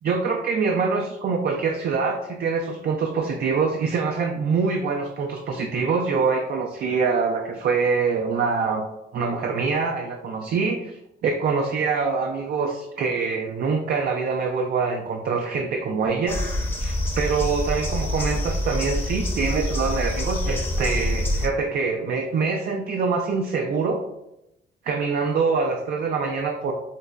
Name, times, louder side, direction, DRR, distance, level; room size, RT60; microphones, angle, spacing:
voice 1, 0.0-8.9 9.1-16.4 16.8-24.0 24.8-26.7, right 5 dB, 50° right, 3 dB, 0.4 m, -24 dB
sound 1, 16.3-21.5, left 1 dB, 10° left, 0.6 m, -26 dB
5.1 x 2.1 x 2.3 m, 0.86 s
cardioid pair, 90°, 20 cm